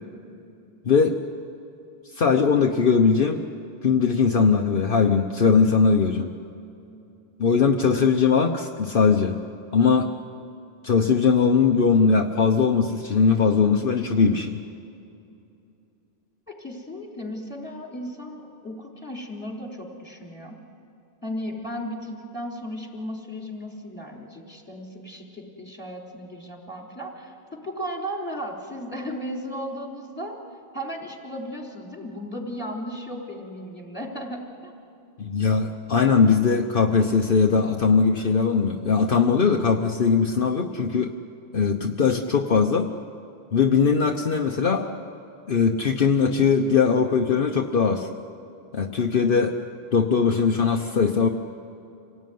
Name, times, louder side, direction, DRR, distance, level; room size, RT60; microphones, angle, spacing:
voice 1, 0.8-1.2 2.1-3.4 3.8-6.3 7.4-9.4 9.7-10.1 10.8-14.6 35.2-41.1 41.5-42.9 43.5-44.9 45.5-48.1 48.7-49.6 49.9-51.3, left 5 dB, 60° left, 3 dB, 1.1 m, -20 dB
voice 2, 16.5-20.6 21.2-30.4 30.7-34.7, equal, 10° left, -1 dB, 3.7 m, -35 dB
26.5 x 18.0 x 9.3 m, 2.7 s
omnidirectional pair, 1.1 m